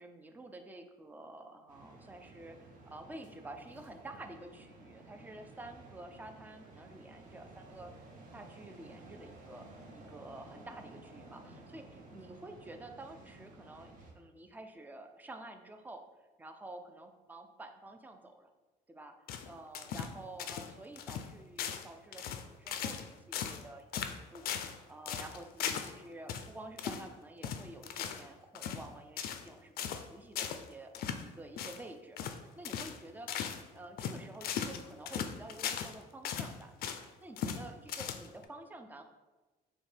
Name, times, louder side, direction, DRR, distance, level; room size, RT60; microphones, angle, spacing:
voice 1, 0.0-2.6 2.9-8.0 8.3-16.1 16.4-18.5 18.9-19.2 19.5-22.3 22.6-30.9 31.2-33.4 33.7-36.7 37.2-39.0, right 2 dB, 10° right, 6 dB, 0.4 m, -50 dB
sound 1, 1.7-14.1, right 2 dB, 50° right, 0.9 m, -54 dB
sound 2, 19.3-20.1 20.4-20.7 21.0-21.3 21.6-21.9 22.1-23.1 23.3-23.6 23.9-24.8 25.1-25.9 26.3-26.5 26.8-27.1 27.4-28.3 28.5-28.9 29.2-29.5 29.8-30.0 30.4-30.6 30.9-31.2 31.6-31.8 32.2-32.4 32.6-33.0 33.3-33.6 34.0-35.9 36.2-37.0 37.4-37.6 37.9-38.4, left 8 dB, 60° left, 0.4 m, -38 dB
5.9 x 2.2 x 3.3 m, 1.2 s
cardioid pair, 110°, 17 cm